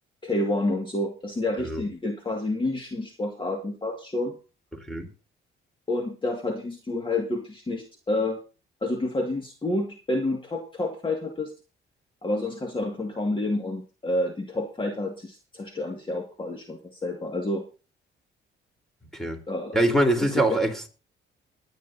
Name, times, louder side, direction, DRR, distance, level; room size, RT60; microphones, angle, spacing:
voice 1, 0.2-4.4 5.9-8.4 8.8-11.5 12.2-17.6 19.5-19.8 20.2-20.6, left 2 dB, 25° left, 2.0 m, -29 dB
voice 2, 4.8-5.1 19.1-19.4 19.7-20.9, right 1 dB, ahead, 3.7 m, -24 dB
21.0 x 10.0 x 2.7 m
cardioid pair, 90°, 20 cm